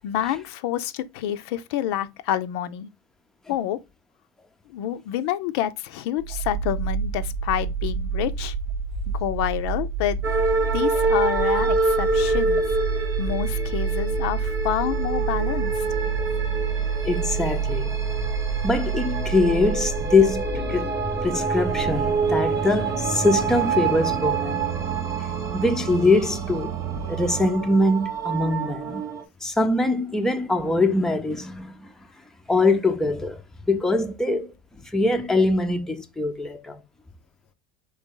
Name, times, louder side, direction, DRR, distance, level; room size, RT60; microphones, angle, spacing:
voice 1, 0.0-2.9 3.5-3.8 4.7-8.5 9.1-10.2 10.7-12.6 12.9-15.8, left 11 dB, 70° left, 0.5 m, -28 dB
sound 1, 6.2-21.0, right 6 dB, 70° right, 1.0 m, -28 dB
sound 2, 10.2-29.2, right 3 dB, 20° right, 0.8 m, -27 dB
voice 2, 17.0-18.0 18.6-20.9 21.2-24.6 25.5-29.0 29.4-31.9 32.5-33.4 33.7-36.8, left 2 dB, 5° left, 0.5 m, -23 dB
sound 3, 21.7-27.5, right 10 dB, 50° right, 0.5 m, -33 dB
4.0 x 3.3 x 3.7 m
supercardioid pair, 125°, 14 cm